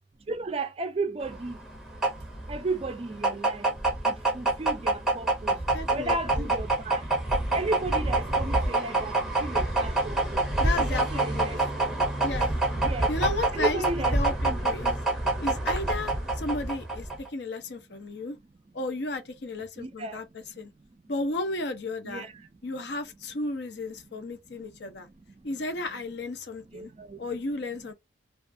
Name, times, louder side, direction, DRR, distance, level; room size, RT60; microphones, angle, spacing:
voice 1, 0.3-1.6 2.5-3.7 4.0-5.6 5.9-10.4 10.8-11.6 12.7-13.1 13.5-14.6 19.8-20.2 20.9-21.0 22.0-22.5 24.8-25.5 26.7-27.3, right 2 dB, 30° right, 0.3 m, -35 dB
sound 1, 1.3-17.3, right 2 dB, ahead, 0.7 m, -26 dB
voice 2, 5.7-6.5 10.6-11.5 12.2-12.5 13.1-13.8 14.1-15.0 15.4-18.4 18.7-20.7 21.1-22.3 22.6-25.1 25.4-26.9 27.2-27.9, left 2 dB, 65° left, 0.6 m, -34 dB
2.4 x 2.3 x 2.6 m
head